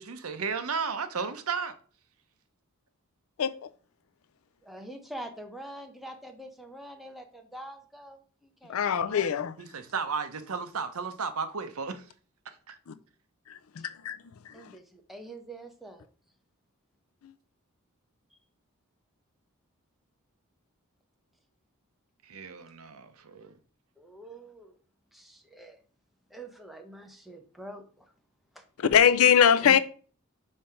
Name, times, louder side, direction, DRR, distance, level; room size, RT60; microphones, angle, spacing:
voice 1, 0.0-1.7 9.6-12.1 12.7-12.8 22.2-23.6, right 5 dB, 75° right, 0.8 m, -34 dB
voice 2, 4.6-9.3 13.8-13.9 14.5-16.1 24.0-24.8 25.1-25.8 26.3-28.1 28.5-28.7 29.6-29.8, right 1 dB, ahead, 0.8 m, -45 dB
voice 3, 8.7-9.5 13.8-14.2 28.9-29.8, left 8 dB, 70° left, 0.4 m, -21 dB
5.4 x 3.3 x 5.6 m
head